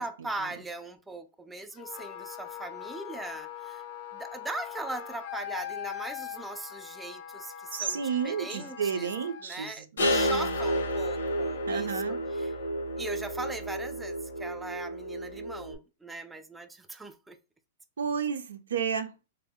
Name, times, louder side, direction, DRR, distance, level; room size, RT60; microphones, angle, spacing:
voice 1, 0.0-3.8 4.1-9.1 9.4-12.5 13.0-17.4, right 2 dB, 10° right, 0.4 m, -40 dB
Wind instrument woodwind instrument, 1.8-9.5, left 9 dB, 50° left, 0.5 m, -41 dB
voice 2, 7.7-10.5 11.7-12.2 18.0-19.1, right 7 dB, 90° right, 0.5 m, -32 dB
sound 1, 10.0-15.7, equal, 90° left, 0.8 m, -31 dB
3.3 x 2.1 x 3.5 m
hypercardioid pair, 125°, 0 cm